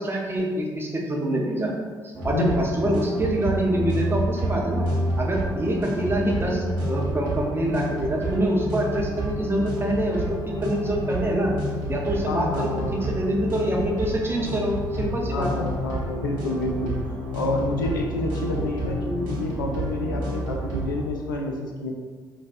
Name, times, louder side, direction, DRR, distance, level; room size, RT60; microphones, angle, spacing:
voice 1, 0.0-1.7 2.2-4.9 5.2-11.5 11.9-15.5, right 1 dB, 20° right, -1 dB, 0.8 m, -25 dB
sound 1, 2.1-21.0, right 1 dB, 75° right, 1.0 m, -29 dB
voice 2, 2.3-2.6 12.3-13.1 15.3-16.9 17.3-21.9, left 2 dB, 85° left, 1 dB, 0.4 m, -28 dB
5.1 x 2.6 x 2.6 m, 1.5 s
figure-of-eight pair, 45°, 10 cm